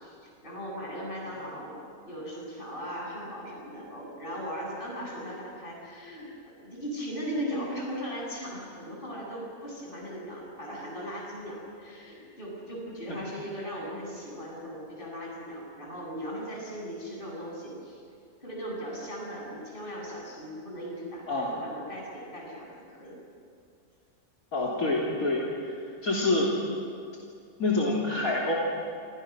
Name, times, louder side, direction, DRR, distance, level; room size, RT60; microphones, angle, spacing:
voice 1, 0.0-6.3 6.6-18.0 18.4-23.2, equal, 35° left, -3 dB, 8.0 m, -38 dB
voice 2, 24.5-25.7 26.0-26.5 27.6-28.5, left 2 dB, 80° left, -4 dB, 3.6 m, -26 dB
28.0 x 27.0 x 6.2 m, 2.4 s
omnidirectional pair, 1.5 m